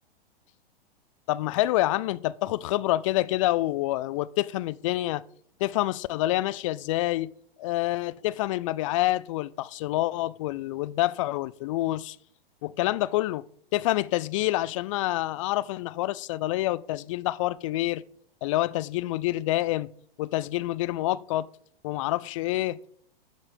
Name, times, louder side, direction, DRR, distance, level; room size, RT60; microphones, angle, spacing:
voice 1, 1.3-5.2 5.6-7.3 7.6-12.2 12.6-13.4 13.7-18.0 18.4-19.9 20.2-21.5 21.8-22.9, left 16 dB, 35° left, 0.4 m, -27 dB
10.5 x 7.4 x 5.1 m
figure-of-eight pair, 110°, 29 cm